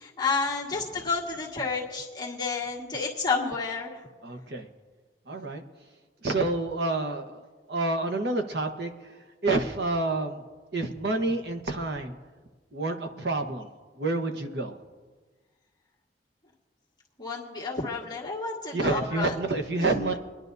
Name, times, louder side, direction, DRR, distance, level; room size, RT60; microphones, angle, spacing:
voice 1, 0.0-4.0 17.2-19.3 19.8-20.0, left 4 dB, 25° left, -6 dB, 1.7 m, -30 dB
voice 2, 4.2-4.7 5.3-5.6 6.2-7.4 7.7-9.1 9.4-10.4 10.7-12.1 12.7-14.8 18.7-20.2, right 2 dB, 65° right, 4 dB, 1.1 m, -28 dB
23.5 x 11.0 x 2.7 m, 1.4 s
head